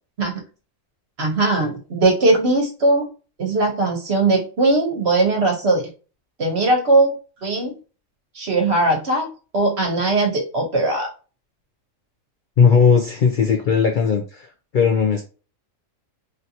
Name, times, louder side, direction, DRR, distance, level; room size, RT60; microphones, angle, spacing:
voice 1, 1.2-3.1 3.4-5.8 6.4-7.2 7.4-7.7 8.3-9.3 9.5-11.1, right 2 dB, 55° right, 2 dB, 1.2 m, -19 dB
voice 2, 12.6-14.5 14.7-15.2, left 6 dB, 65° left, 4 dB, 0.5 m, -17 dB
3.2 x 2.5 x 2.8 m, 0.34 s
omnidirectional pair, 1.4 m